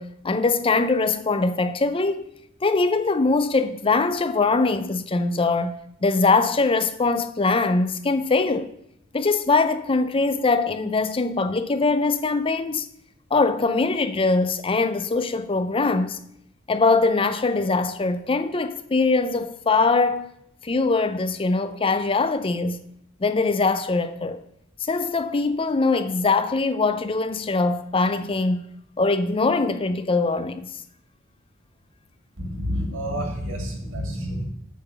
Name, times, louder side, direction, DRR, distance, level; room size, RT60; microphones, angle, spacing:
voice 1, 0.0-2.2 2.6-8.7 9.1-12.9 13.3-16.2 16.7-20.3 20.6-22.8 23.2-24.4 24.8-28.7 29.0-30.7, left 3 dB, 25° left, 0.5 m, -22 dB
voice 2, 32.4-34.5, equal, 70° right, 2.3 m, -29 dB
8.3 x 3.9 x 6.6 m
head